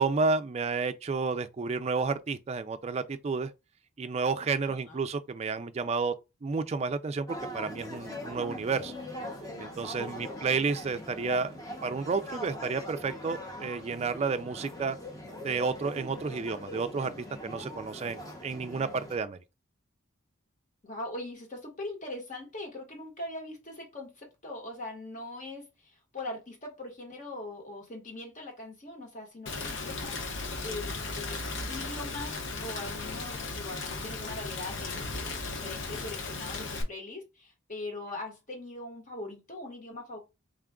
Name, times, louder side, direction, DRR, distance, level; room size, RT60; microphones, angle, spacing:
voice 1, 0.0-3.5 4.0-6.1 6.4-8.9 9.6-11.5 11.8-15.0 15.4-17.1 17.4-19.4, right 4 dB, 30° right, 0.3 m, -31 dB
voice 2, 4.6-5.0 10.0-10.6 20.8-30.2 30.6-40.2, left 2 dB, 40° left, 1.3 m, -41 dB
sound 1, 7.3-19.2, left 1 dB, 15° left, 0.8 m, -42 dB
Rain, 29.5-36.8, left 3 dB, 60° left, 0.8 m, -36 dB
3.7 x 2.4 x 3.5 m
head